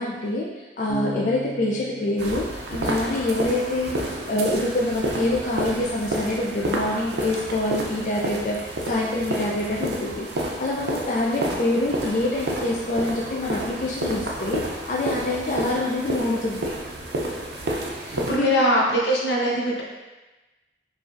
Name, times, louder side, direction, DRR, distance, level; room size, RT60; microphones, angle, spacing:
voice 1, 0.0-16.7 18.0-18.5, left 1 dB, 45° left, -3 dB, 0.4 m, -26 dB
Bass guitar, 0.9-3.9, left 1 dB, 5° left, 0.8 m, -37 dB
sound 1, 2.2-18.4, right 1 dB, 70° right, 0.5 m, -30 dB
voice 2, 18.2-19.8, equal, 85° left, -4 dB, 0.9 m, -22 dB
4.9 x 2.6 x 2.5 m, 1.1 s
head